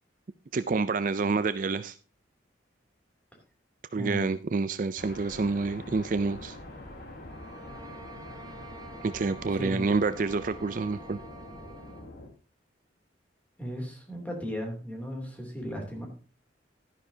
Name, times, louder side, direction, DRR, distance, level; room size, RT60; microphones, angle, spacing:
voice 1, 0.5-2.0 3.9-6.6 9.0-11.2, right 4 dB, 45° right, 13 dB, 0.4 m, -28 dB
voice 2, 3.9-4.3 9.5-9.9 13.6-16.1, equal, 10° left, 1 dB, 2.9 m, -36 dB
sound 1, 5.0-12.3, left 1 dB, 55° left, 3.0 m, -45 dB
sound 2, 7.3-12.1, right 3 dB, 20° right, 0.9 m, -48 dB
12.0 x 10.5 x 2.8 m, 0.36 s
head